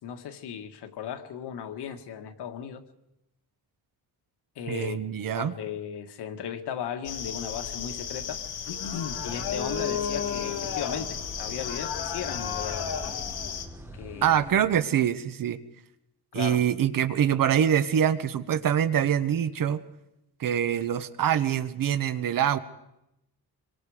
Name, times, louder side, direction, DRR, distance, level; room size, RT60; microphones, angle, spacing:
voice 1, 0.0-2.8 4.6-5.0 5.3-8.4 8.7-12.9 13.9-14.4 16.3-16.6, left 8 dB, 90° left, 7 dB, 1.8 m, -36 dB
voice 2, 4.7-5.5 14.2-15.6 16.3-19.8 20.4-22.6, right 9 dB, 55° right, 12 dB, 1.2 m, -24 dB
sound 1, 7.0-13.7, left 7 dB, 70° left, 2.1 m, -33 dB
sound 2, 9.1-14.7, right 1 dB, 5° right, 1.7 m, -44 dB
26.0 x 23.5 x 5.0 m, 0.88 s
cardioid pair, 145°, 39 cm